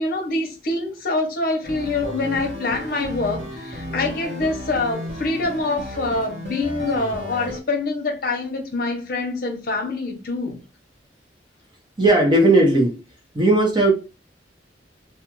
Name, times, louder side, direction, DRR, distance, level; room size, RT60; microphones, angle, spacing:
voice 1, 0.0-10.6, left 2 dB, 55° left, 0.8 m, -25 dB
sound 1, 1.6-7.6, equal, 45° right, 1.0 m, -33 dB
voice 2, 12.0-13.0 13.3-13.9, right 2 dB, 25° right, 0.7 m, -16 dB
2.4 x 2.3 x 3.0 m
head